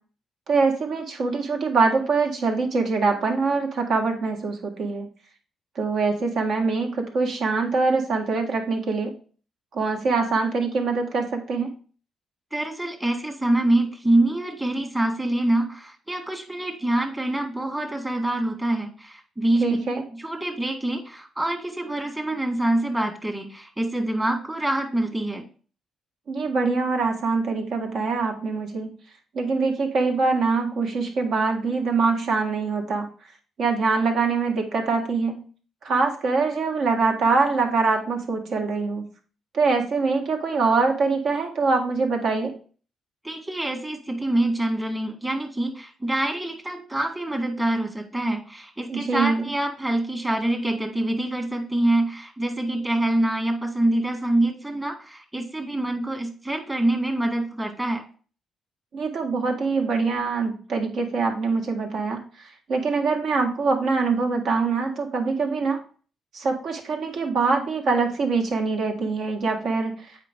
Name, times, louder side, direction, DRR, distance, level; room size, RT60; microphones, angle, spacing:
voice 1, 0.5-5.1 5.8-9.1 9.7-11.7 19.6-20.0 26.3-28.9 29.3-33.1 33.6-35.4 35.8-39.0 39.5-42.5 48.9-49.4 58.9-62.2 62.7-65.8 66.3-69.9, right 4 dB, 65° right, 2 dB, 1.8 m, -24 dB
voice 2, 12.5-19.8 20.1-25.4 43.2-58.0, right 1 dB, 20° right, 3 dB, 1.7 m, -25 dB
8.2 x 4.8 x 3.7 m, 0.41 s
cardioid pair, 90°, 0 cm